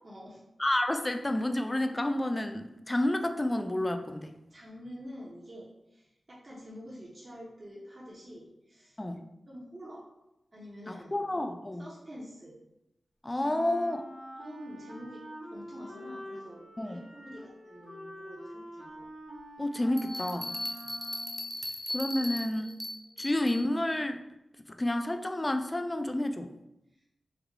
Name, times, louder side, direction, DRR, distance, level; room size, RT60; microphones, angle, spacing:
voice 1, 0.0-0.4 4.5-9.0 9.5-10.0 10.5-11.2 11.8-12.6 13.7-13.8 14.4-15.2 15.5-19.0 20.8-20.9 21.5-21.8 22.1-22.7 23.1-23.3 26.9-27.0, equal, 45° right, -6 dB, 0.8 m, -47 dB
voice 2, 0.6-4.3 9.0-9.3 10.9-11.9 13.2-14.0 16.8-17.0 19.6-20.5 21.9-22.7 23.2-24.2 24.7-26.5, left 1 dB, 25° left, 7 dB, 0.3 m, -30 dB
Wind instrument woodwind instrument, 13.3-21.5, equal, 70° right, 1.1 m, -45 dB
sound 1, 20.0-23.6, left 1 dB, 5° right, 0.7 m, -37 dB
3.4 x 2.3 x 3.5 m, 0.90 s
cardioid pair, 55°, 0 cm